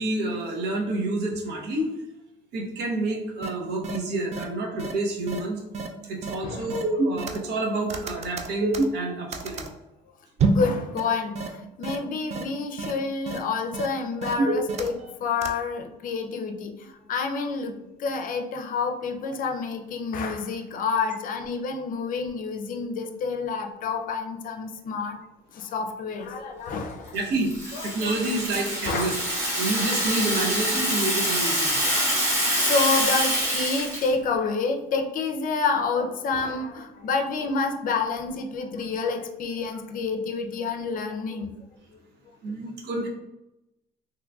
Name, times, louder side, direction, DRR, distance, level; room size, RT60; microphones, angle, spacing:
voice 1, 0.0-1.9 2.5-5.6 6.1-9.7 27.1-29.2 29.6-31.7 42.4-43.1, right 2 dB, 80° right, 0 dB, 0.8 m, -29 dB
sound 1, 3.4-3.5 3.8-4.0 4.3-4.4 4.8-4.9 5.3-5.4 5.7-5.9 6.2-6.3 6.7-7.6 7.9-9.7 10.4-10.7 11.0-11.1 11.4-11.5 11.8-12.0 12.3-12.4 12.8-12.9 13.3-13.4 13.7-13.9 14.2-15.1 15.4-15.5, right 3 dB, 40° right, 0.4 m, -26 dB
voice 2, 6.4-6.7 10.5-25.2 25.5-27.2 27.7-28.1 28.9-29.2 32.4-41.5, left 4 dB, 55° left, 5 dB, 0.5 m, -28 dB
Rattle (instrument), 27.2-34.1, equal, 20° right, 1.5 m, -25 dB
3.6 x 3.0 x 2.3 m, 0.95 s
cardioid pair, 110°, 17 cm